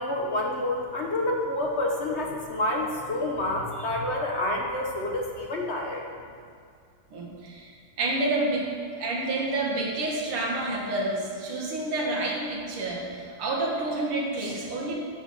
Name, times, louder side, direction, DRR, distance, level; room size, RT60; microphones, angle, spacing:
voice 1, 0.0-6.0, left 1 dB, 40° left, 0 dB, 1.0 m, -28 dB
voice 2, 7.1-8.7 8.9-14.9, right 2 dB, 85° right, -3 dB, 2.6 m, -29 dB
8.1 x 7.0 x 7.6 m, 2.2 s
omnidirectional pair, 2.3 m